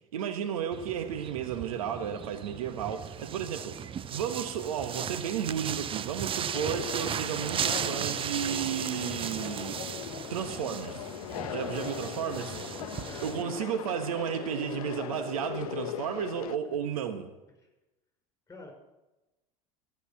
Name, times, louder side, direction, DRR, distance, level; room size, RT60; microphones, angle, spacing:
voice 1, 0.1-3.8 4.1-9.8 10.3-11.1 11.5-12.6 13.2-17.3, right 8 dB, 80° right, 1.2 m, -33 dB
sound 1, 0.7-13.4, right 8 dB, 30° right, 0.6 m, -36 dB
Conversation, 6.5-16.5, left 11 dB, 80° left, 0.7 m, -39 dB
voice 2, 11.6-12.0 13.0-13.6 16.6-16.8 18.5-18.7, left 3 dB, 15° left, 5.3 m, -48 dB
14.0 x 6.4 x 8.5 m
hypercardioid pair, 85°, 18 cm